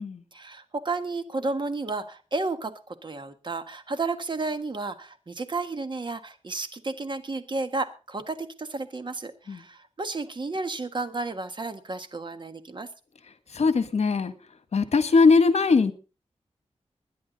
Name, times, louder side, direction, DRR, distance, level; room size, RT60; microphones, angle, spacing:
voice 1, 0.3-12.9, right 3 dB, 40° right, 9 dB, 1.6 m, -32 dB
voice 2, 13.5-14.3 14.7-15.9, left 4 dB, 65° left, 11 dB, 1.4 m, -20 dB
21.0 x 10.0 x 4.0 m, 0.34 s
wide cardioid pair, 100°, 12 cm